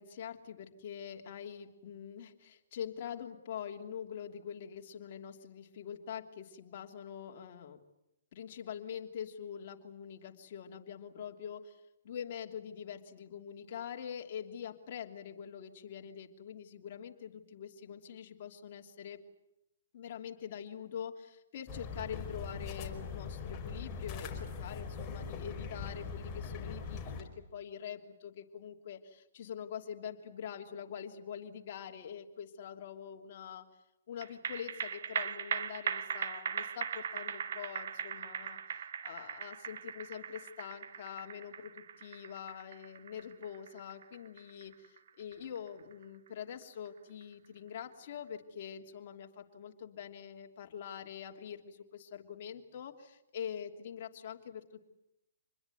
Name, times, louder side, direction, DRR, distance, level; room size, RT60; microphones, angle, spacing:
voice 1, 0.0-7.8 8.3-19.2 19.9-33.7 34.1-54.8, left 8 dB, 50° left, 3 dB, 3.1 m, -44 dB
sound 1, 21.7-27.2, left 5 dB, 20° left, 4.8 m, -41 dB
sound 2, 34.2-46.9 47.2-47.3, right 7 dB, 60° right, 2.0 m, -40 dB
26.5 x 21.0 x 9.5 m, 0.86 s
hypercardioid pair, 140°, 0 cm